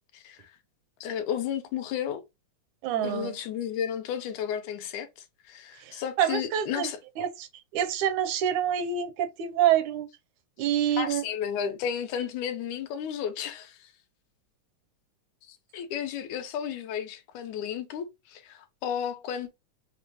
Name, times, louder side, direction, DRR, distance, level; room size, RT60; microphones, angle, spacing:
voice 1, 1.0-2.2 3.0-5.1 5.5-7.0 11.0-13.9 15.5-19.5, left 9 dB, 85° left, 2.2 m, -33 dB
voice 2, 2.8-3.4 5.8-6.9 7.2-7.5 7.7-10.1 10.6-11.2, right 10 dB, 85° right, 2.1 m, -27 dB
5.9 x 3.0 x 2.8 m
omnidirectional pair, 3.4 m